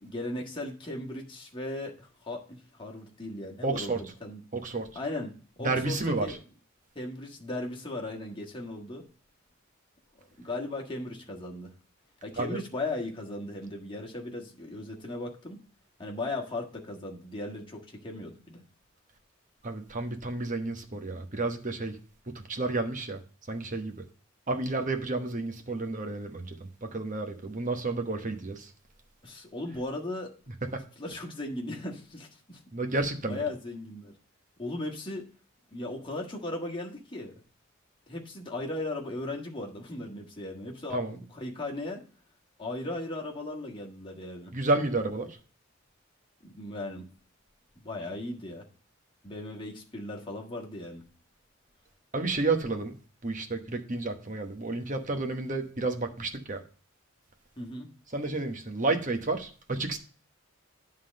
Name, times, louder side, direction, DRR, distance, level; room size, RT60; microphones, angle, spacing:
voice 1, 0.0-4.4 4.9-5.3 5.6-5.9 6.2-6.3 6.9-9.0 10.1-11.7 12.2-15.6 16.0-18.6 29.2-30.3 31.0-32.6 33.3-34.1 34.6-35.3 35.7-37.3 38.1-42.0 42.6-44.5 46.4-47.1 47.8-48.6 49.2-51.0 57.6-57.9, left 2 dB, 25° left, 1.5 m, -37 dB
voice 2, 3.6-4.0 4.5-4.9 5.6-6.4 12.4-12.6 19.6-22.0 22.3-23.2 23.5-24.0 24.5-28.7 30.7-30.8 32.7-33.5 40.9-41.2 44.5-45.4 52.1-52.9 53.2-56.6 58.1-60.0, right 3 dB, 35° right, 1.1 m, -31 dB
9.6 x 3.8 x 6.4 m
head